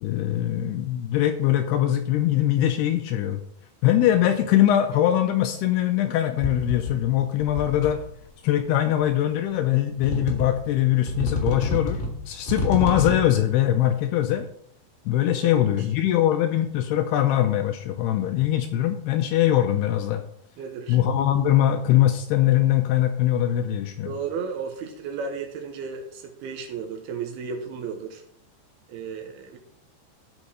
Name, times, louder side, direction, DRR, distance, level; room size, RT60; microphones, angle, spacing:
voice 1, 0.0-3.4 3.8-8.0 8.4-14.5 15.1-20.2 20.9-24.1, left 12 dB, 80° left, 7 dB, 2.4 m, -22 dB
sound 1, 6.4-7.1 7.4-8.1 9.0-9.1 10.0-10.7 11.1-13.4, left 2 dB, 45° left, 0.9 m, -29 dB
voice 2, 15.4-15.9 20.6-21.0 24.1-28.2 28.9-29.6, right 6 dB, 75° right, 5 dB, 2.6 m, -34 dB
13.0 x 5.3 x 4.9 m, 0.67 s
omnidirectional pair, 5.1 m